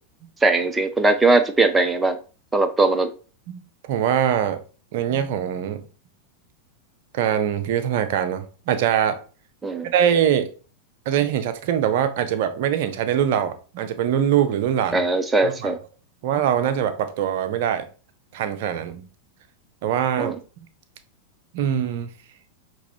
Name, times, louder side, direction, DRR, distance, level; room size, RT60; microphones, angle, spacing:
voice 1, 0.4-2.2 2.5-3.1 9.6-9.9 14.9-15.8 20.2-20.4, right 3 dB, 10° right, 8 dB, 0.6 m, -20 dB
voice 2, 3.9-4.6 4.9-5.8 7.1-9.2 9.8-10.5 11.1-15.0 15.4-15.7 16.2-17.8 18.3-19.0 19.8-20.3 21.5-22.1, right 9 dB, 50° right, 9 dB, 0.6 m, -23 dB
6.0 x 3.0 x 2.7 m, 0.36 s
figure-of-eight pair, 90°, 0 cm